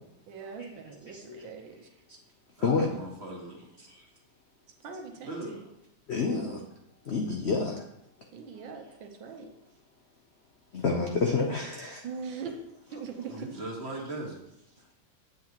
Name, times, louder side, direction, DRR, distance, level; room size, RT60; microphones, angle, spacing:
voice 1, 0.3-1.9 4.8-5.6 6.2-6.6 8.3-9.5 12.0-12.6 12.9-13.5, right 5 dB, 75° right, 3 dB, 1.6 m, -41 dB
voice 2, 1.1-1.5 2.6-2.9 3.9-4.0 6.1-6.6 7.0-7.9 10.7-12.0, left 4 dB, 85° left, 2 dB, 0.5 m, -29 dB
voice 3, 2.6-3.7 5.1-5.6 13.2-14.4, right 2 dB, 35° right, -2 dB, 1.8 m, -39 dB
8.5 x 7.5 x 3.0 m, 0.81 s
omnidirectional pair, 2.1 m